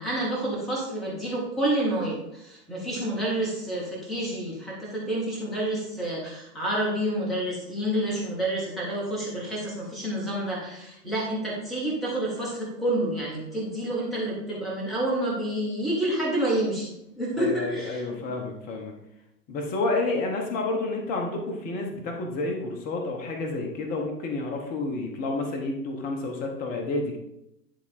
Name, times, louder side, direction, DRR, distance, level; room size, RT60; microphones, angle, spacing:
voice 1, 0.0-18.3, right 1 dB, ahead, -5 dB, 0.4 m, -29 dB
voice 2, 17.4-18.9 19.5-27.2, left 2 dB, 15° left, 1 dB, 0.8 m, -30 dB
10.0 x 3.6 x 4.1 m, 0.84 s
hypercardioid pair, 130°, 50 cm